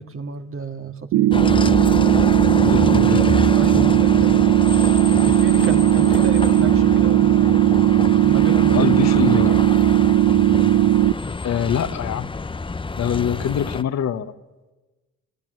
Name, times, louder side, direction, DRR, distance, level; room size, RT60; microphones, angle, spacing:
voice 1, 0.0-1.4 2.7-4.4 5.2-7.6 8.3-9.7 13.1-13.6, right 4 dB, 45° right, 6 dB, 2.1 m, -31 dB
sound 1, 1.1-11.1, right 14 dB, 85° right, 0.8 m, -17 dB
Bus, 1.3-13.8, left 4 dB, 15° left, 0.7 m, -26 dB
voice 2, 2.6-3.5 8.7-9.5 11.4-12.3 13.0-14.3, left 9 dB, 65° left, 9 dB, 1.4 m, -24 dB
26.5 x 17.5 x 7.8 m, 1.1 s
cardioid pair, 90°, 30 cm